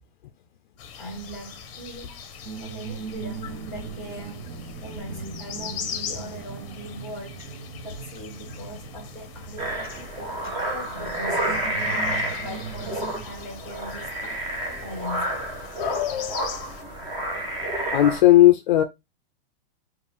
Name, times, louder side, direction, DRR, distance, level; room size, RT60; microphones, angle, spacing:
sound 1, 0.8-16.8, left 7 dB, 35° left, 0.8 m, -41 dB
voice 1, 1.0-2.2 2.6-7.5 7.8-10.4 10.7-12.1 12.4-14.4 14.8-15.4, equal, ahead, 2.3 m, -40 dB
sound 2, 2.4-13.3, right 5 dB, 45° right, 1.0 m, -39 dB
sound 3, 9.6-18.2, right 1 dB, 15° right, 0.9 m, -30 dB
voice 2, 15.8-16.5 17.9-18.8, left 14 dB, 50° left, 0.4 m, -18 dB
5.2 x 2.5 x 3.3 m
supercardioid pair, 160°, 30 cm